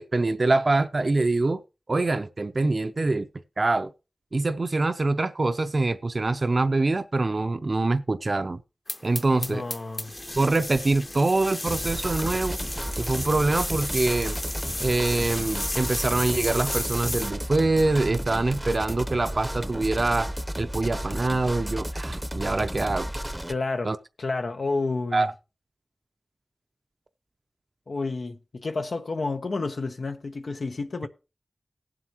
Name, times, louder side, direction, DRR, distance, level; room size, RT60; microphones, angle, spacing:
voice 1, 0.0-1.6 1.9-3.3 3.6-3.9 4.3-8.6 9.0-9.6 10.3-12.6 13.0-14.4 14.8-20.3 20.6-23.1 23.8-24.0 25.1-25.3, right 2 dB, 55° right, 0.5 m, -24 dB
sound 1, 8.9-17.3, left 1 dB, 30° left, 0.8 m, -33 dB
voice 2, 9.3-10.1 23.5-23.9 24.2-25.3 27.9-31.1, left 3 dB, 90° left, 0.9 m, -30 dB
sound 2, 11.7-23.5, equal, 10° right, 0.7 m, -33 dB
18.5 x 7.6 x 2.9 m
wide cardioid pair, 70°, 0 cm